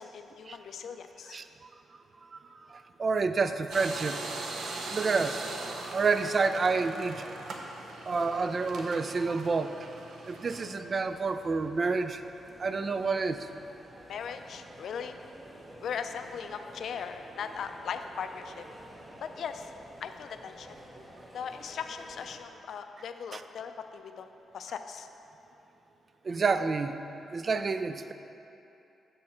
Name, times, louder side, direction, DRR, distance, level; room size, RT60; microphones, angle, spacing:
voice 1, 0.0-1.4 14.1-15.2 15.8-18.6 19.2-19.7 20.0-20.8 21.3-24.3 24.5-25.1, left 7 dB, 70° left, 7 dB, 0.4 m, -39 dB
voice 2, 2.7-4.2 4.9-5.4 5.9-7.2 8.1-9.9 10.3-12.2 12.6-13.5 23.3-23.4 26.2-27.0 27.3-28.1, right 4 dB, 40° right, 10 dB, 0.3 m, -29 dB
sound 1, 3.7-10.7, right 3 dB, 70° right, 0.7 m, -40 dB
sound 2, 10.8-22.4, right 1 dB, 20° right, 0.9 m, -51 dB
6.5 x 6.5 x 4.2 m, 2.9 s
cardioid pair, 100°, 0 cm